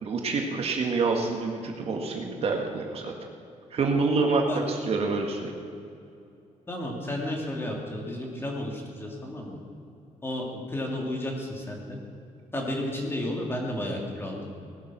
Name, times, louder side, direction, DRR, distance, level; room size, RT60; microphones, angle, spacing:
voice 1, 0.0-3.1 3.7-5.5, right 4 dB, 50° right, 2 dB, 2.0 m, -27 dB
voice 2, 6.7-9.6 10.2-12.0 12.5-14.5, left 1 dB, 15° left, 0 dB, 2.9 m, -32 dB
19.0 x 12.0 x 6.3 m, 2.6 s
cardioid pair, 150°, 13 cm